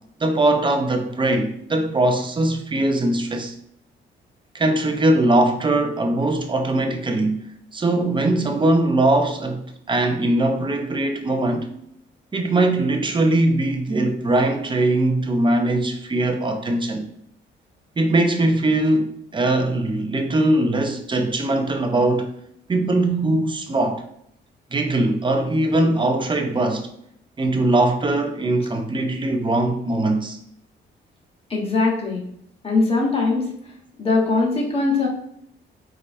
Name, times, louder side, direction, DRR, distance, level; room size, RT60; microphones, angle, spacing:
voice 1, 0.2-3.5 4.5-7.4 7.7-11.7 12.3-17.0 18.0-22.3 22.7-24.0 24.7-26.9 27.4-30.4, right 2 dB, 25° right, 0.8 m, -21 dB
voice 2, 31.5-32.2 32.6-33.7 34.0-35.1, left 3 dB, 30° left, 1.6 m, -21 dB
4.1 x 3.9 x 3.2 m
cardioid pair, 90°, 20 cm